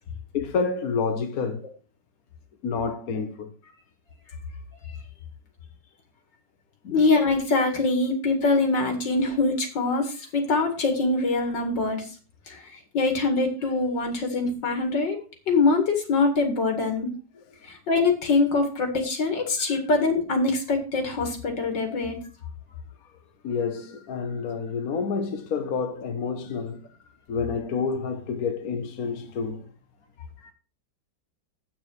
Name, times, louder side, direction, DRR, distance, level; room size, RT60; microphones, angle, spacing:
voice 1, 0.3-1.6 2.6-3.5 6.8-7.0 19.7-19.8 23.4-26.9 27.3-29.7, left 5 dB, 55° left, 1.4 m, -29 dB
voice 2, 6.9-12.0 12.5-12.6 12.9-15.2 15.5-17.1 17.7-22.2, left 3 dB, 80° left, 2.8 m, -23 dB
8.8 x 6.2 x 6.5 m
omnidirectional pair, 1.9 m